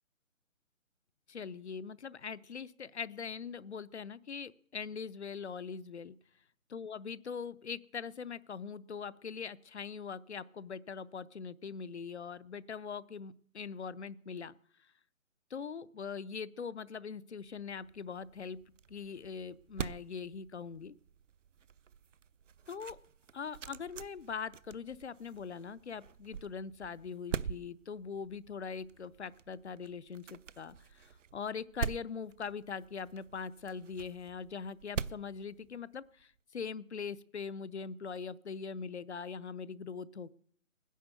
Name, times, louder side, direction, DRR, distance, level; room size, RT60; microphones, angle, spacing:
voice 1, 1.3-6.1 6.7-14.6 15.5-18.6 18.9-20.9 22.7-23.0 23.3-40.3, left 6 dB, 55° left, 18 dB, 0.7 m, -42 dB
sound 1, 17.5-36.2, right 7 dB, 65° right, 0.6 m, -45 dB
18.5 x 10.0 x 6.7 m, 0.62 s
hypercardioid pair, 175°, 40 cm